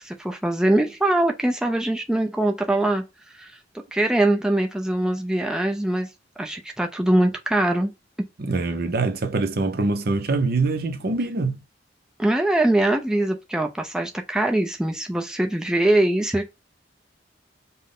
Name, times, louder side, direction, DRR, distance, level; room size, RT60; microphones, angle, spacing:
voice 1, 0.0-3.0 3.4-3.5 3.9-6.1 6.4-7.9 12.2-16.5, right 1 dB, 5° right, 0.5 m, -22 dB
voice 2, 8.4-11.6, right 3 dB, 55° right, 0.7 m, -24 dB
5.5 x 2.1 x 3.8 m
head